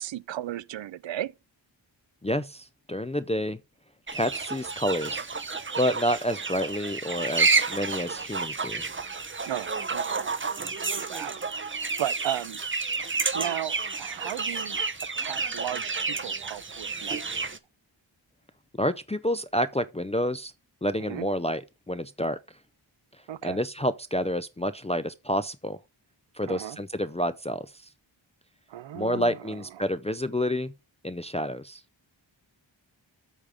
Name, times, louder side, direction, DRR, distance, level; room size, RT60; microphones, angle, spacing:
voice 1, 0.0-1.3 9.5-12.6 13.3-14.8 15.2-17.6 21.0-21.3 23.3-23.6 26.5-26.8 28.7-29.6, right 12 dB, 70° right, 0.5 m, -36 dB
voice 2, 2.2-3.6 4.1-5.3 5.8-8.8 18.7-20.5 20.8-22.4 23.4-25.8 26.3-27.7 28.9-30.7 31.0-31.8, equal, 15° left, 0.4 m, -29 dB
sound 1, 4.1-17.6, right 4 dB, 25° right, 0.6 m, -30 dB
8.3 x 3.5 x 6.7 m
wide cardioid pair, 100°, 46 cm